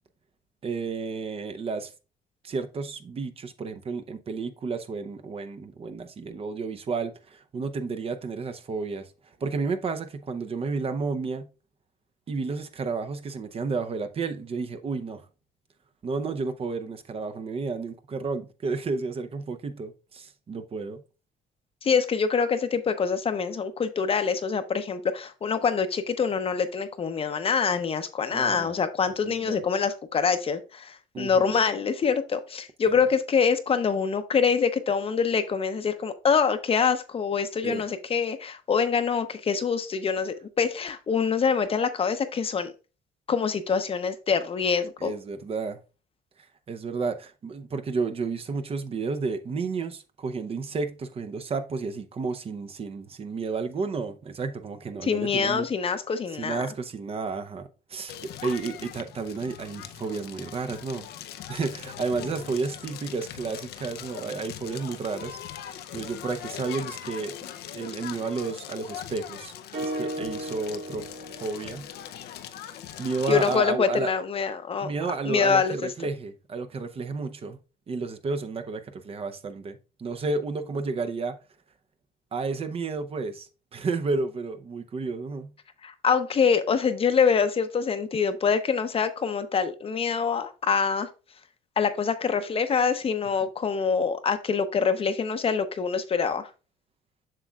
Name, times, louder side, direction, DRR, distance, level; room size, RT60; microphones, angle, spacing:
voice 1, 0.6-1.9 2.4-9.0 9.4-11.5 12.3-15.3 16.0-21.0 28.3-28.8 29.2-29.6 31.1-31.5 32.9-33.0 37.6-37.8 45.0-45.8 46.7-55.7 56.4-61.1 61.5-69.5 69.8-71.1 71.4-71.9 73.0-74.1 74.8-77.6 77.9-81.4 82.3-85.5, right 4 dB, 35° right, 0.7 m, -32 dB
voice 2, 21.8-42.7 43.3-45.1 55.0-56.6 73.3-74.9 75.3-75.8 85.8-91.1 91.8-96.5, left 6 dB, 35° left, 0.7 m, -25 dB
Crackle, 58.1-73.6, left 10 dB, 75° left, 0.6 m, -41 dB
sound 1, 69.7-72.0, right 1 dB, 65° right, 1.6 m, -35 dB
7.5 x 6.1 x 2.3 m
cardioid pair, 110°, 17 cm